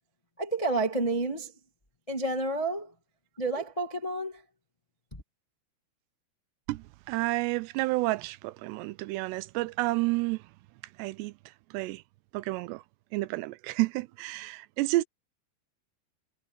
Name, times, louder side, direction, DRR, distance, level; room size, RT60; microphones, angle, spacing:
voice 1, 0.4-1.5 2.1-2.9 3.4-4.4, right 2 dB, 20° left, 0.9 m, -30 dB
voice 2, 6.7-10.4 11.0-11.3 11.7-12.0 12.3-12.8 13.1-15.1, right 20 dB, 90° right, 2.8 m, -30 dB
omnidirectional pair, 4.8 m